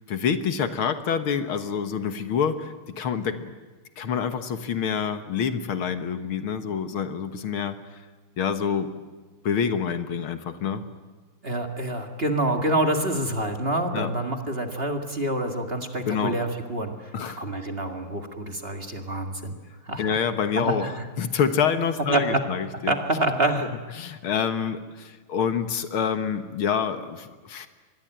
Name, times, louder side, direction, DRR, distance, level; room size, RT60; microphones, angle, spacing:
voice 1, 0.0-3.5 4.0-7.8 8.4-8.9 9.4-10.8 13.9-14.1 16.0-16.4 17.1-17.4 20.0-20.9 21.2-23.0 24.0-27.7, left 7 dB, 75° left, 10 dB, 2.2 m, -27 dB
voice 2, 11.4-16.9 17.3-19.6 19.9-20.2 20.6-21.0 22.1-22.4 22.9-23.7, right 1 dB, 30° right, 5 dB, 2.0 m, -27 dB
25.5 x 21.0 x 9.0 m, 1.4 s
omnidirectional pair, 2.4 m